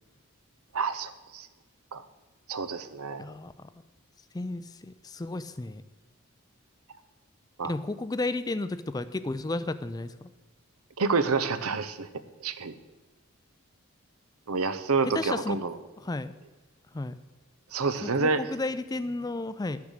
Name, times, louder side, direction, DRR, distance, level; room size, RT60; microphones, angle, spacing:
voice 1, 0.7-1.5 1.9-2.0 2.5-3.2 7.6-7.7 11.0-12.1 12.4-12.7 14.5-15.8 17.7-18.4, right 4 dB, 90° right, 12 dB, 0.8 m, -28 dB
voice 2, 3.2-3.7 4.3-5.8 7.6-10.3 15.1-15.6 16.0-16.3 16.9-17.1 18.0-19.8, left 2 dB, 20° left, 13 dB, 0.3 m, -33 dB
12.0 x 7.0 x 6.5 m, 1.2 s
head